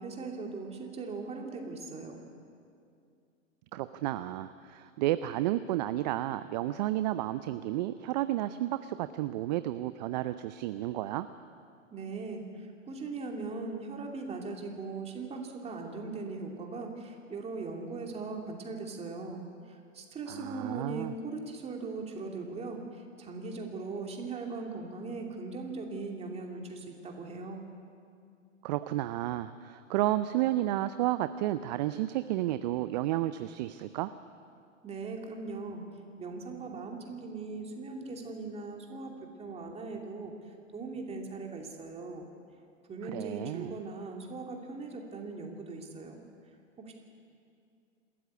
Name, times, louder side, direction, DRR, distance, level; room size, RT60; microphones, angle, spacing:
voice 1, 0.0-2.2 11.9-27.7 34.8-35.8 36.2-42.3 42.9-46.2 46.8-46.9, right 3 dB, 15° right, 2 dB, 2.7 m, -39 dB
voice 2, 3.7-11.3 20.3-21.1 28.6-34.1 43.0-43.7, right 14 dB, 35° right, 13 dB, 0.5 m, -32 dB
27.0 x 13.5 x 8.2 m, 2.4 s
hypercardioid pair, 120°, 38 cm